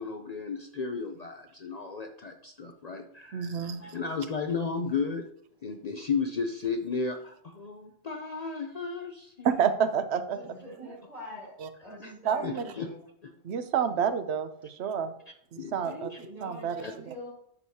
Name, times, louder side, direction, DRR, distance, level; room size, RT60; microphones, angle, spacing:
voice 1, 0.0-5.3 5.6-9.7 10.5-11.0 11.9-12.1 12.4-12.9 13.2-13.3 15.6-16.2 16.8-16.9, left 5 dB, 50° left, 5 dB, 0.6 m, -34 dB
voice 2, 3.3-3.8 9.4-10.5 11.6-11.7 12.2-12.7 13.4-15.1 15.5-16.1 16.4-16.8, right 7 dB, 80° right, 10 dB, 1.0 m, -29 dB
voice 3, 10.3-13.1 15.8-17.3, equal, 40° right, -6 dB, 3.6 m, -44 dB
9.8 x 6.4 x 2.8 m, 0.68 s
omnidirectional pair, 1.1 m